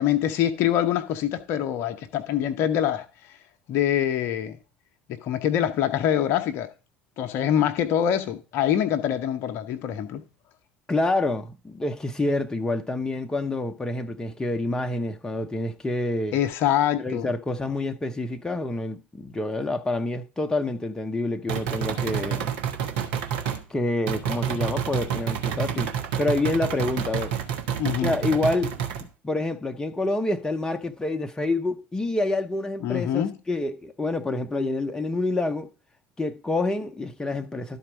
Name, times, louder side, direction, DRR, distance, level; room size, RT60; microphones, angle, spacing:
voice 1, 0.0-3.3 3.7-4.6 5.1-6.7 7.2-10.2 16.3-17.3 27.8-28.1 32.8-33.4, left 10 dB, 50° left, 0.7 m, -25 dB
voice 2, 10.9-16.4 17.0-22.5 23.7-25.9 26.2-27.3 28.0-28.7 29.2-35.7 36.2-37.8, left 2 dB, 10° left, 0.8 m, -27 dB
sound 1, 21.5-23.6 24.1-29.0, right 8 dB, 60° right, 1.2 m, -28 dB
11.5 x 4.4 x 5.2 m
figure-of-eight pair, 65°, 5 cm